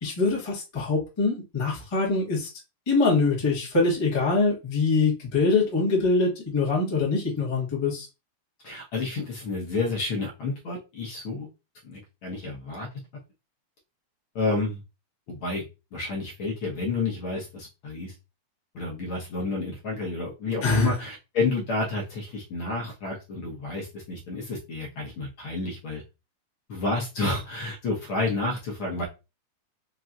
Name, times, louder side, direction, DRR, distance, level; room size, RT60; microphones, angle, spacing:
voice 1, 0.0-2.5 2.9-8.1 20.6-20.9, left 3 dB, 35° left, 0.4 m, -24 dB
voice 2, 8.6-11.5 11.8-12.9 14.3-14.8 15.3-15.6 15.9-18.1 18.7-26.0 26.7-29.0, left 3 dB, 60° left, 1.5 m, -30 dB
5.3 x 2.7 x 2.4 m
omnidirectional pair, 3.4 m